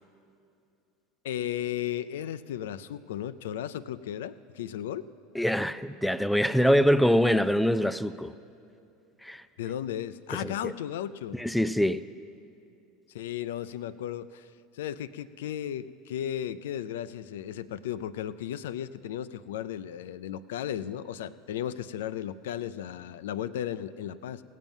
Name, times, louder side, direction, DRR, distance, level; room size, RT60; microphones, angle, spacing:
voice 1, 1.2-5.0 9.6-11.4 13.1-14.5 14.7-24.4, left 10 dB, 80° left, 15 dB, 0.4 m, -35 dB
voice 2, 5.3-8.3 9.2-9.4 10.3-10.7 11.3-12.0, equal, ahead, 14 dB, 0.4 m, -24 dB
17.5 x 7.4 x 5.5 m, 2.6 s
hypercardioid pair, 90°, 0 cm